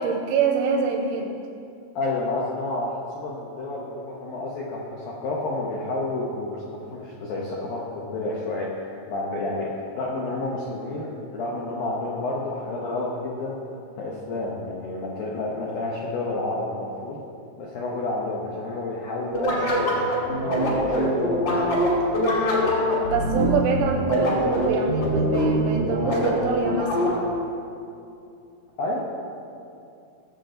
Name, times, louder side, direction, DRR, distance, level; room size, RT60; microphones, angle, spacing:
voice 1, 0.0-1.4 22.9-27.1, right 5 dB, 80° right, 3 dB, 2.9 m, -25 dB
voice 2, 2.0-13.6 14.0-17.2 17.6-20.1 20.5-21.7 28.8-29.0, left 2 dB, 80° left, -4 dB, 2.1 m, -30 dB
sound 1, 19.3-27.4, equal, 40° left, 1.7 m, -23 dB
19.5 x 7.6 x 3.9 m, 2.6 s
omnidirectional pair, 6.0 m